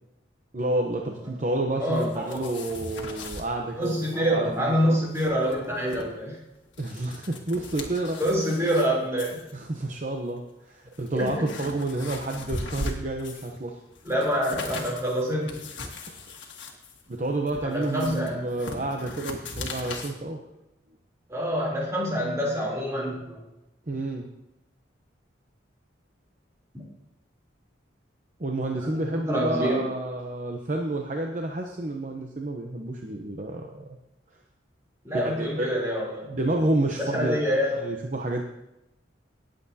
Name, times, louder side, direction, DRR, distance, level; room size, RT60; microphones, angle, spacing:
voice 1, 0.5-5.0 6.8-8.2 9.5-13.8 16.1-16.2 17.1-20.4 23.9-24.3 28.4-33.9 35.1-35.7 36.3-37.4 37.8-38.4, right 2 dB, 40° right, 1 dB, 0.8 m, -30 dB
voice 2, 1.8-2.5 3.7-6.4 8.2-9.4 11.1-11.5 14.0-15.6 17.6-18.4 21.3-23.4 26.7-26.8 28.8-29.9 35.0-36.3 37.0-37.7, equal, 15° right, -4 dB, 3.3 m, -26 dB
sound 1, 1.9-3.5 3.8-4.2 4.4-4.5 4.9-6.0 6.6-8.9 9.2-9.5 10.3-10.4 10.9-13.6 13.9-20.1, left 2 dB, 75° left, 1.6 m, -39 dB
18.0 x 7.8 x 2.8 m, 0.91 s
head